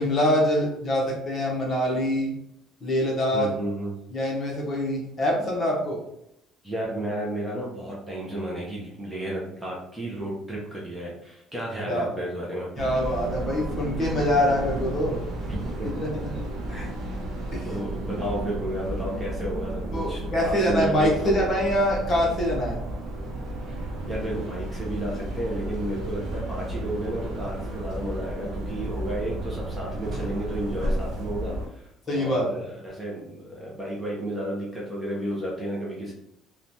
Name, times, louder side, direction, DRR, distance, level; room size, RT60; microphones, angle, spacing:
voice 1, 0.0-2.3 2.8-3.5 4.1-6.0 11.9-12.1 12.8-15.2 15.9-16.4 17.5-17.7 19.9-22.8 32.1-32.6, equal, 30° left, -3 dB, 0.8 m, -24 dB
voice 2, 3.3-4.0 6.6-12.7 15.5-16.3 16.7-16.9 17.6-21.5 24.1-36.1, right 1 dB, 10° right, -5 dB, 0.5 m, -32 dB
sound 1, 12.8-31.7, right 1 dB, 60° right, 0.5 m, -33 dB
3.0 x 2.1 x 2.6 m, 0.78 s
cardioid pair, 155°, 0 cm